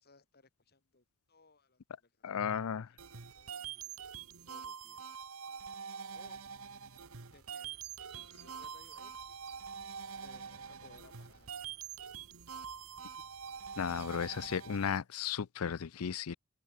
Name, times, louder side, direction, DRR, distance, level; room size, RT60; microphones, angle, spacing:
voice 1, 0.0-4.0 4.4-5.1 6.1-6.4 7.3-7.8 8.1-9.4 10.2-11.7, left 3 dB, 50° left, 4.7 m, -63 dB
voice 2, 2.2-2.9 13.8-16.4, left 7 dB, 80° left, 0.5 m, -35 dB
sound 1, 3.0-15.0, right 7 dB, 75° right, 1.3 m, -45 dB
sound 2, 7.7-14.9, right 6 dB, 50° right, 6.0 m, -61 dB
open air
head